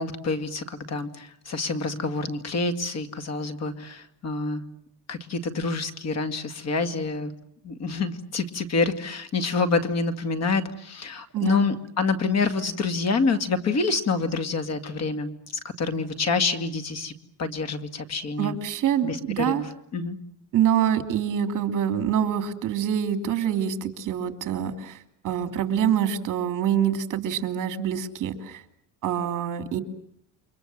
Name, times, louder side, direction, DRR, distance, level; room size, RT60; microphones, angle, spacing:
voice 1, 0.0-4.6 5.1-7.3 7.6-15.3 15.8-17.1 17.4-18.5 19.0-19.7 19.9-20.2, left 4 dB, 40° left, 9 dB, 2.3 m, -27 dB
voice 2, 11.3-11.7 18.4-19.6 20.5-28.6 29.0-29.8, right 9 dB, 45° right, 8 dB, 2.8 m, -25 dB
29.5 x 24.5 x 7.5 m, 0.73 s
cardioid pair, 155°, 41 cm